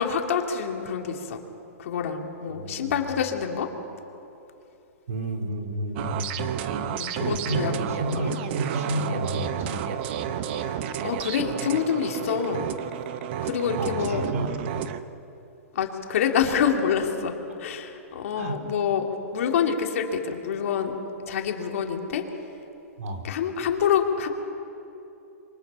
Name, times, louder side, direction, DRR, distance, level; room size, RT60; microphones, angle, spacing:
voice 1, 0.0-1.4 1.8-3.7 6.8-7.7 8.2-8.3 10.6-12.7 13.4-14.2 15.7-19.0 19.3-21.0 21.3-22.2 23.2-24.3, left 7 dB, 65° left, 2 dB, 3.0 m, -27 dB
voice 2, 2.5-3.0 5.1-6.4 7.2-9.9 13.8-14.5 18.3-18.6 23.0-23.3, right 1 dB, 70° right, 3 dB, 4.0 m, -31 dB
sound 1, 6.0-15.0, right 9 dB, 45° right, 1.1 m, -31 dB
27.5 x 24.0 x 5.7 m, 2.8 s
hypercardioid pair, 150°, 8 cm